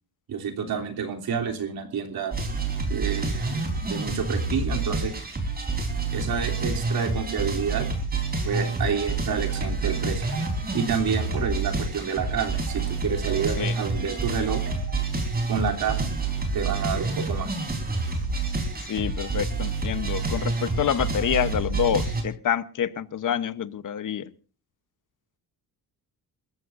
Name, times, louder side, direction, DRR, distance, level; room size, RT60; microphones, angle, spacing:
voice 1, 0.3-2.4 2.9-3.6 3.8-5.1 6.1-7.9 8.4-10.2 10.7-14.6 15.5-16.1 16.5-17.6, right 6 dB, 65° right, 2 dB, 3.3 m, -29 dB
sound 1, 2.3-22.2, right 3 dB, 25° right, 4.1 m, -28 dB
sound 2, 8.5-15.1, right 5 dB, 40° right, 5.5 m, -44 dB
voice 2, 18.9-24.3, left 9 dB, 50° left, 13 dB, 1.1 m, -27 dB
28.0 x 14.5 x 2.6 m, 0.38 s
wide cardioid pair, 165°, 39 cm